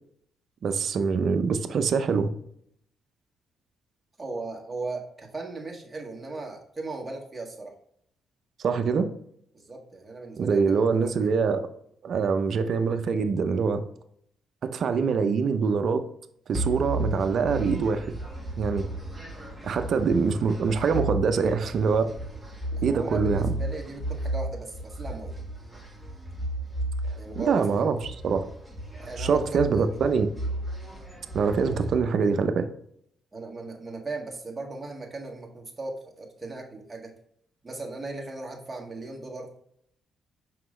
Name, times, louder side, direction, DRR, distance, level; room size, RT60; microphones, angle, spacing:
voice 1, 0.6-2.3 8.6-9.1 10.4-11.6 12.0-13.8 14.6-16.0 16.5-18.0 18.6-18.8 19.6-22.1 22.8-23.5 27.4-28.4 29.2-30.3 31.3-32.7, right 5 dB, 60° right, 8 dB, 0.7 m, -24 dB
voice 2, 4.2-7.7 9.5-11.3 22.7-25.3 27.2-28.0 29.0-30.0 33.3-37.1 37.6-39.5, right 3 dB, 20° right, 0 dB, 1.7 m, -38 dB
sound 1, 16.5-31.9, right 1 dB, ahead, 1.7 m, -34 dB
5.9 x 5.1 x 3.3 m, 0.68 s
cardioid pair, 90°, 0 cm